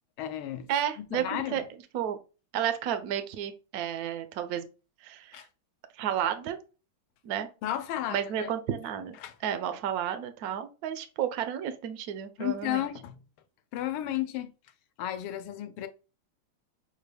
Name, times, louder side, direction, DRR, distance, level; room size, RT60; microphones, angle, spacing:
voice 1, 0.2-0.7 1.0-1.6 5.3-5.5 7.6-8.5 9.2-9.3 12.4-13.2 13.7-14.5 15.0-15.9, left 13 dB, 80° left, 1.5 m, -33 dB
voice 2, 0.7-1.6 1.9-2.2 2.5-4.7 5.0-5.5 5.9-6.6 7.2-7.5 8.1-9.2 9.4-12.9, right 9 dB, 85° right, 0.8 m, -32 dB
6.2 x 2.2 x 3.3 m
omnidirectional pair, 2.3 m